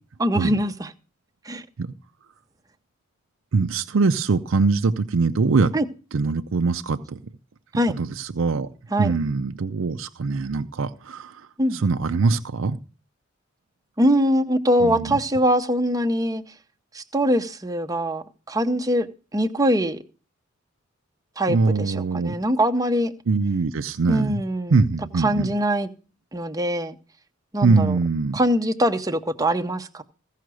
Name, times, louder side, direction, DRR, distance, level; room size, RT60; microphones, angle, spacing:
voice 1, 0.2-0.9 1.5-1.6 5.7-5.9 7.7-7.9 8.9-9.1 11.6-11.8 14.0-16.4 16.9-19.1 19.3-20.0 21.4-23.1 24.1-24.8 25.2-25.9 26.3-27.0 27.5-28.0 28.3-30.0, equal, 20° right, 0.7 m, -22 dB
voice 2, 3.5-5.7 6.1-7.2 7.9-8.7 9.0-11.4 11.7-12.8 14.8-15.2 21.5-22.4 23.3-24.4 24.7-25.5 27.6-28.4, right 4 dB, 75° right, 0.5 m, -22 dB
15.5 x 5.7 x 6.2 m
head